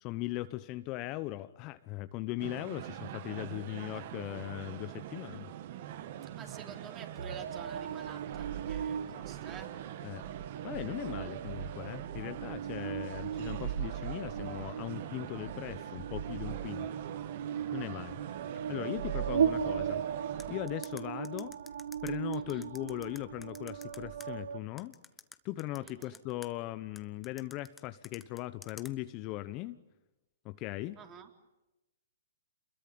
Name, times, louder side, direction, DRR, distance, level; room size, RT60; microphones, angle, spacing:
voice 1, 0.0-5.5 10.0-10.2 10.6-16.9 17.7-18.2 18.7-20.0 20.5-21.6 22.0-24.9 25.4-29.8 30.4-31.0, left 17 dB, 30° left, 12 dB, 0.9 m, -39 dB
sound 1, 2.4-20.6, right 11 dB, 45° right, 1.5 m, -44 dB
voice 2, 6.3-9.7 22.3-22.7 25.8-26.1 31.0-31.3, right 7 dB, 25° right, 3 dB, 4.0 m, -49 dB
sound 2, 7.2-24.6, right 8 dB, 70° right, 1.1 m, -37 dB
sound 3, 20.4-24.3 24.8-26.5 27.0-28.9, left 4 dB, 10° left, 1.1 m, -50 dB
28.5 x 22.0 x 8.9 m, 0.99 s
hypercardioid pair, 135°, 0 cm